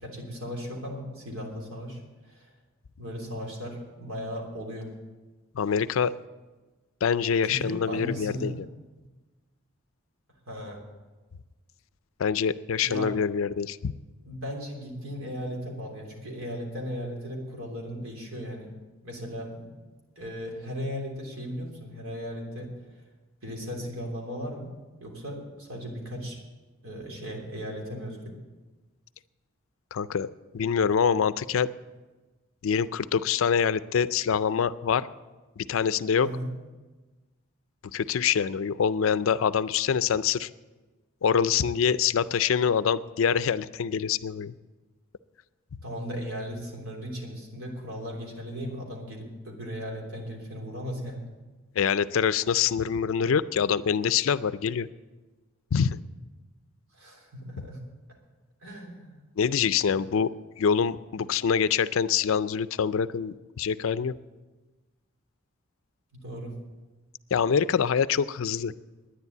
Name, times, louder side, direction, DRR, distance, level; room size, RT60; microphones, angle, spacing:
voice 1, 0.0-2.5 3.0-4.9 7.4-8.6 10.5-10.8 12.8-13.1 14.2-18.7 19.0-19.7 20.1-22.7 23.4-24.7 25.0-26.4 26.8-28.3 36.2-36.5 45.8-51.2 56.9-57.8 58.6-59.2 59.9-60.2 66.1-66.5, equal, 85° right, 0 dB, 3.3 m, -37 dB
voice 2, 5.5-6.1 7.0-8.5 12.2-13.9 29.9-30.3 30.5-31.7 32.6-35.1 35.6-36.3 37.9-40.5 41.2-44.5 51.8-54.9 55.7-56.0 59.4-60.3 60.6-64.1 67.3-68.7, left 7 dB, 75° left, 16 dB, 0.4 m, -25 dB
11.0 x 10.0 x 8.3 m, 1.2 s
head